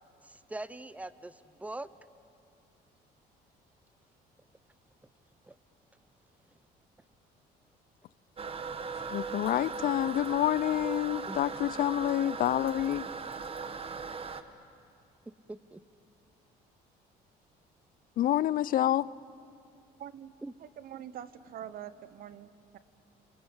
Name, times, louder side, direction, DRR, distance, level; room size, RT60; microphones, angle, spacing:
voice 1, 0.2-1.9 5.5-5.6 11.3-11.4 15.5-15.8 20.4-20.5, right 2 dB, 10° right, 16 dB, 0.7 m, -42 dB
Toilet flush, 8.4-14.4, right 5 dB, 35° right, 1.2 m, -38 dB
voice 2, 9.1-13.1 18.2-19.1, left 13 dB, 55° left, 20 dB, 0.5 m, -28 dB
voice 3, 20.0-22.8, right 10 dB, 60° right, 15 dB, 1.1 m, -45 dB
28.5 x 22.5 x 8.0 m, 2.5 s
cardioid pair, 110°, 17 cm